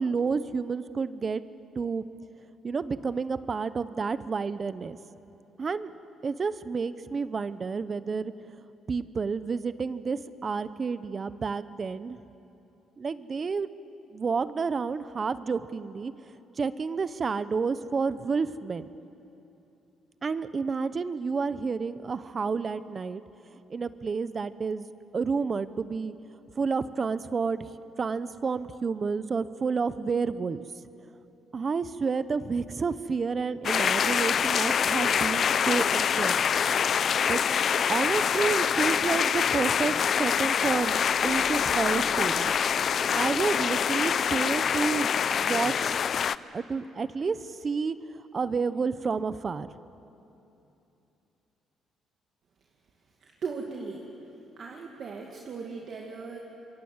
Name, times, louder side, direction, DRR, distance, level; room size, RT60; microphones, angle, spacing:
voice 1, 0.0-1.4 1.7-2.0 2.6-5.0 5.6-5.9 6.2-8.3 8.9-12.2 13.0-13.7 14.1-16.1 16.6-18.9 20.2-23.2 23.7-26.1 26.6-27.7 28.0-30.6 31.5-36.4 37.3-37.4 37.8-42.5 43.1-46.1 46.5-48.0 48.3-49.7, right 5 dB, 35° right, 14 dB, 0.8 m, -30 dB
sound 1, 33.6-46.4, left 7 dB, 50° left, 0.5 m, -25 dB
voice 2, 53.2-54.0 54.6-56.4, right 5 dB, 55° right, 0 dB, 2.3 m, -38 dB
27.0 x 23.0 x 8.0 m, 2.9 s
cardioid pair, 100°, 0 cm